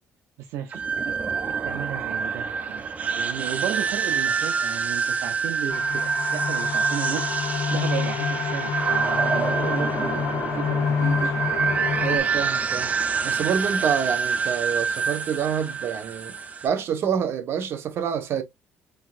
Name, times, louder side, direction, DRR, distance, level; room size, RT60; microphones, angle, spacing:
voice 1, 0.4-1.2 1.6-2.9 3.1-11.4, right 10 dB, 85° right, 0.6 m, -34 dB
sound 1, 0.7-16.7, right 6 dB, 30° right, 0.6 m, -26 dB
sound 2, 5.7-12.2, left 7 dB, 75° left, 1.0 m, -27 dB
voice 2, 12.0-12.9 13.2-16.4 16.6-18.4, right 7 dB, 60° right, 1.1 m, -27 dB
4.6 x 3.9 x 2.5 m
cardioid pair, 110°, 5 cm